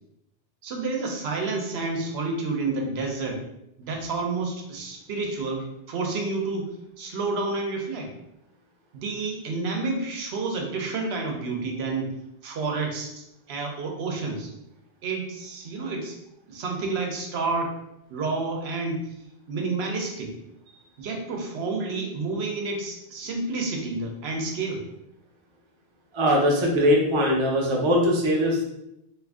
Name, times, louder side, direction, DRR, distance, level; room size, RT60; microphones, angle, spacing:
voice 1, 0.6-3.4 3.8-8.1 8.9-12.1 12.4-13.1 13.5-14.5 15.0-16.2 16.5-17.8 18.1-19.0 19.5-20.3 21.0-24.8, right 3 dB, 90° right, 2 dB, 0.9 m, -29 dB
voice 2, 26.1-28.6, equal, 35° right, -2 dB, 0.6 m, -21 dB
2.6 x 2.5 x 3.4 m, 0.83 s
omnidirectional pair, 1.0 m